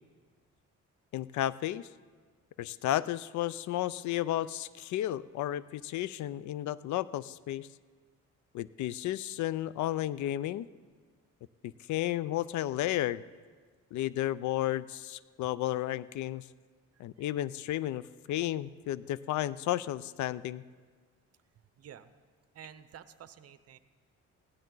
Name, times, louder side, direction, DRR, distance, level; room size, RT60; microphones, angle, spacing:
voice 1, 1.1-1.9 2.6-7.7 8.5-10.7 11.6-13.2 13.9-16.4 17.0-20.6, left 13 dB, 70° left, 18 dB, 0.5 m, -33 dB
voice 2, 16.9-17.3 21.8-22.1 22.5-23.8, right 9 dB, 55° right, 13 dB, 0.7 m, -51 dB
17.0 x 12.0 x 3.9 m, 1.5 s
cardioid pair, 90°, 30 cm